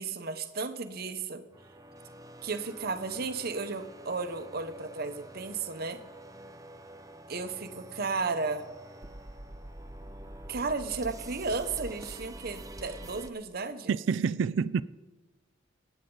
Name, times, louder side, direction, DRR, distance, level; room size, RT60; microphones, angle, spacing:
voice 1, 0.0-1.4 2.4-6.0 7.3-8.6 10.5-14.0, right 4 dB, 50° right, 1.0 m, -34 dB
sound 1, 1.5-13.3, right 1 dB, 20° right, 0.7 m, -46 dB
voice 2, 13.9-14.8, right 6 dB, 70° right, 0.4 m, -27 dB
24.0 x 9.2 x 3.9 m
head